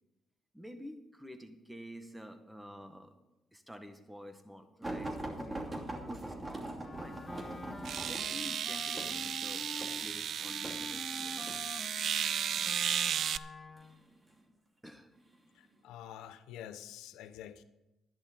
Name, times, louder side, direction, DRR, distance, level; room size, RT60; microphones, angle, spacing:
voice 1, 0.5-3.1 3.5-7.2 8.0-11.5 12.2-12.3 14.8-15.1, equal, 5° right, 7 dB, 1.7 m, -50 dB
sound 1, 4.8-11.6 12.4-12.8 13.8-14.4 15.2-15.3 15.7-15.8, right 1 dB, 25° right, 2.7 m, -42 dB
Wind instrument woodwind instrument, 6.8-14.0, left 3 dB, 35° left, 1.1 m, -47 dB
sound 2, 7.0-7.1 7.8-13.4, right 9 dB, 65° right, 0.4 m, -34 dB
voice 2, 15.5-17.6, left 10 dB, 85° left, 12 dB, 0.8 m, -47 dB
11.5 x 10.5 x 5.3 m, 0.96 s
supercardioid pair, 60°, 0 cm